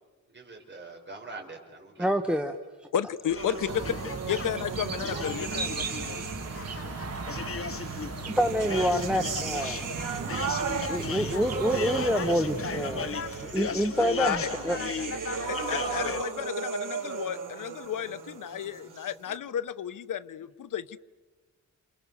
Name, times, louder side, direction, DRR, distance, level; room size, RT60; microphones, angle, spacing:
voice 1, 0.3-2.1 3.5-3.8, right 3 dB, 35° right, 1 dB, 5.6 m, -44 dB
voice 2, 2.0-2.6 8.2-9.9 10.2-10.4 10.9-13.1 13.4-14.8, equal, 5° right, 5 dB, 1.0 m, -27 dB
voice 3, 2.9-3.9 4.3-5.8 13.7-13.8 14.2-14.5 15.5-21.0, left 9 dB, 85° left, 15 dB, 0.8 m, -32 dB
sound 1, 3.3-16.2, left 6 dB, 45° left, 0.9 m, -37 dB
sound 2, 3.4-6.8 7.8-19.4, right 6 dB, 90° right, 3.4 m, -36 dB
sound 3, 3.7-14.0, right 5 dB, 55° right, 2.0 m, -37 dB
29.0 x 28.0 x 7.1 m, 1.3 s
wide cardioid pair, 155°, 31 cm